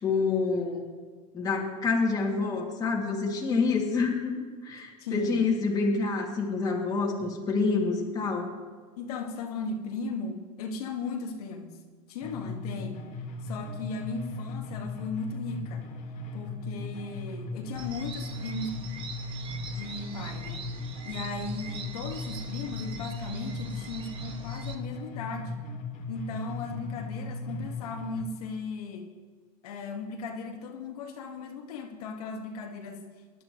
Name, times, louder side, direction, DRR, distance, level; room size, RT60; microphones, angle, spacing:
voice 1, 0.0-0.8 1.3-4.3 4.6-8.5, left 4 dB, 20° left, -2 dB, 2.4 m, -27 dB
voice 2, 3.5-4.0 5.0-5.5 9.0-11.8 12.1-13.1 13.4-15.9 16.3-18.7 19.7-20.6 21.1-25.6 26.1-29.1 29.6-33.0, left 4 dB, 80° left, 1 dB, 1.8 m, -37 dB
sound 1, 12.2-28.2, left 2 dB, 40° left, 1.9 m, -38 dB
sound 2, 17.7-24.7, right 5 dB, 30° right, 1.2 m, -43 dB
20.5 x 11.5 x 3.1 m, 1.5 s
supercardioid pair, 140°, 19 cm